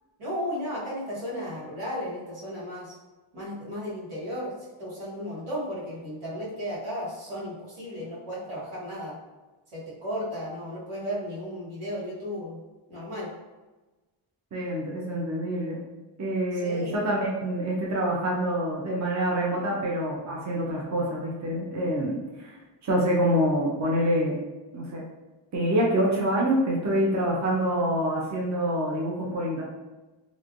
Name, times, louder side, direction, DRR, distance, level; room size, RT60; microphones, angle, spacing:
voice 1, 0.2-2.9 3.3-4.5 4.8-9.2 9.7-12.6 12.9-13.3 16.5-17.0, equal, 85° right, -8 dB, 1.4 m, -34 dB
voice 2, 14.5-15.8 16.2-22.6 22.8-24.4 24.7-25.0 25.5-29.6, equal, 35° right, -3 dB, 0.6 m, -26 dB
3.1 x 2.6 x 2.5 m, 1.2 s
wide cardioid pair, 115°, 49 cm